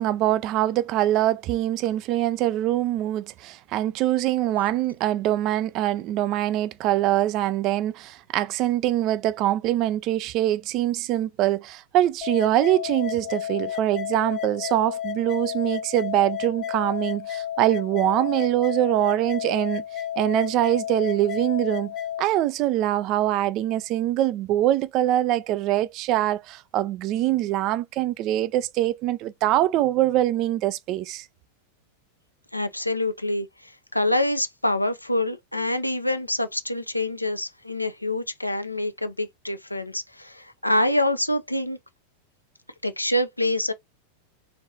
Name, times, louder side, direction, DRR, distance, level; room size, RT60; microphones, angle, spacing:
voice 1, 0.0-19.8 20.2-21.9 22.2-31.3, right 13 dB, 40° right, 0.3 m, -23 dB
sound 1, 12.2-22.2, left 10 dB, 30° left, 0.5 m, -32 dB
voice 2, 32.5-41.8 42.8-43.7, left 1 dB, 85° left, 0.5 m, -26 dB
3.5 x 3.2 x 2.7 m
figure-of-eight pair, 90°, 0 cm